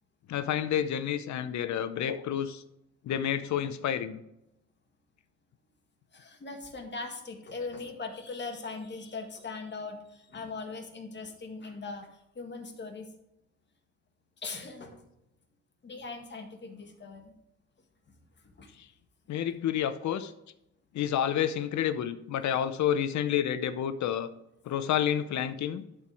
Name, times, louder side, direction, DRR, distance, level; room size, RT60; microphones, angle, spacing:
voice 1, 0.3-2.6 3.0-4.2 19.3-20.3 20.9-24.3 24.7-25.8, left 10 dB, 70° left, 12 dB, 0.7 m, -29 dB
voice 2, 6.1-13.1 14.4-15.0 15.8-17.3 18.6-18.7, left 3 dB, 35° left, 4 dB, 1.8 m, -40 dB
11.0 x 4.5 x 4.7 m, 0.84 s
cardioid pair, 90°, 30 cm